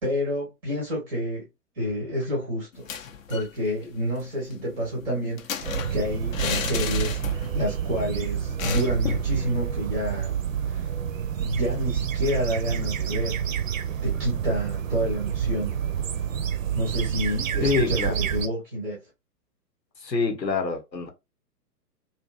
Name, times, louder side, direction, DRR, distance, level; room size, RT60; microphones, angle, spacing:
voice 1, 0.0-1.4 1.8-2.9 3.3-10.3 10.7-10.9 11.4-13.4 14.0-15.7 16.7-19.0, equal, 5° right, 0.5 m, -29 dB
sound 1, 2.7-3.5 3.8-3.9 4.2-7.7 7.9-8.1 8.6-9.3, left 7 dB, 55° left, 0.5 m, -33 dB
sound 2, 5.6-18.5, right 8 dB, 55° right, 0.5 m, -28 dB
voice 2, 17.6-18.2 20.0-21.1, left 4 dB, 90° left, 0.9 m, -26 dB
2.6 x 2.5 x 2.3 m
figure-of-eight pair, 120°, 49 cm